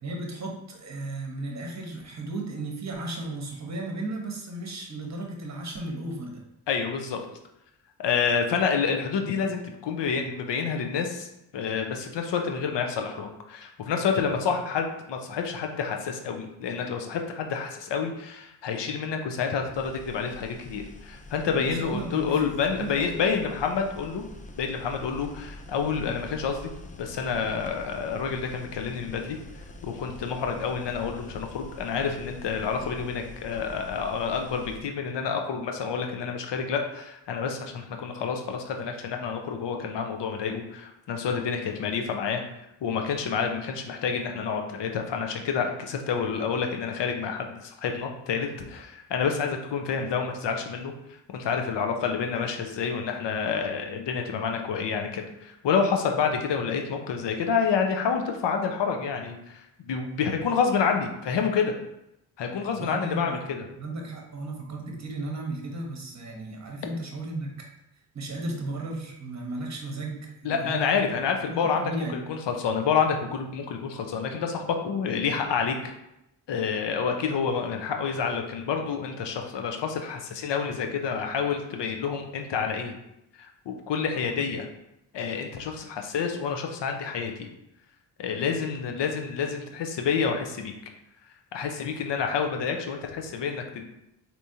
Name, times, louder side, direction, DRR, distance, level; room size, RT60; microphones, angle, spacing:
voice 1, 0.0-6.4 21.5-23.2 62.7-63.4 63.7-67.7 68.1-71.0 71.5-72.3, right 2 dB, 35° right, 1 dB, 1.0 m, -35 dB
voice 2, 6.7-7.2 8.0-24.2 24.5-26.7 27.0-29.4 29.8-42.4 42.8-50.9 51.3-61.7 62.4-63.6 70.4-75.9 76.5-83.0 83.3-84.7 85.1-87.5 88.2-90.7 91.5-93.8, left 6 dB, 55° left, 4 dB, 0.7 m, -28 dB
sound 1, 19.7-34.8, left 1 dB, 20° left, 0.3 m, -45 dB
3.4 x 2.9 x 2.7 m, 0.85 s
supercardioid pair, 45°, 50 cm